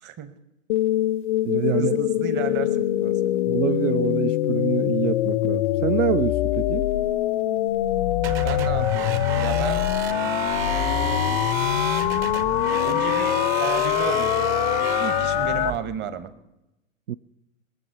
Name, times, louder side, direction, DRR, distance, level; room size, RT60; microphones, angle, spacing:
voice 1, 0.0-0.4 1.8-3.4 6.9-7.1 8.4-9.9 10.6-11.4 12.8-14.5 14.8-16.3, right 9 dB, 25° right, 13 dB, 1.0 m, -33 dB
sound 1, 0.7-15.7, left 14 dB, 40° left, 0.4 m, -23 dB
voice 2, 1.4-2.0 3.5-6.9 17.1-17.2, right 11 dB, 65° right, 14 dB, 0.5 m, -26 dB
sound 2, 8.2-15.8, right 9 dB, 45° right, 1.3 m, -31 dB
21.5 x 7.3 x 5.9 m, 0.91 s
figure-of-eight pair, 105°, 41 cm